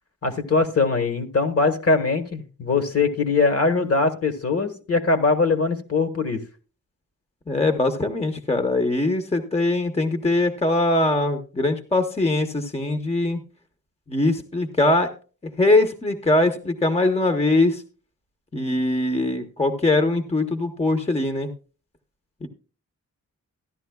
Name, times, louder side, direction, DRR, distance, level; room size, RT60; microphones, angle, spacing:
voice 1, 0.2-6.4, left 3 dB, 50° left, 7 dB, 1.4 m, -21 dB
voice 2, 7.5-13.4 14.1-15.1 15.6-17.8 18.5-21.5 22.4-22.5, left 2 dB, 20° left, 8 dB, 0.9 m, -22 dB
14.0 x 11.0 x 2.3 m, 0.36 s
wide cardioid pair, 105°, 32 cm